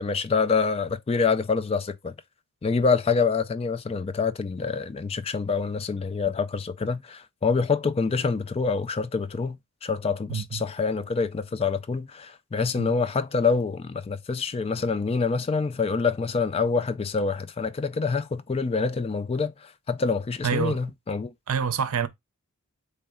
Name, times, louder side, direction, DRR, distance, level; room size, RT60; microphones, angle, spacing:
voice 1, 0.0-2.1 2.6-21.3, left 4 dB, 25° left, 0.3 m, -26 dB
voice 2, 20.4-20.8 21.5-22.1, right 6 dB, 80° right, 0.6 m, -26 dB
3.9 x 3.2 x 3.5 m
head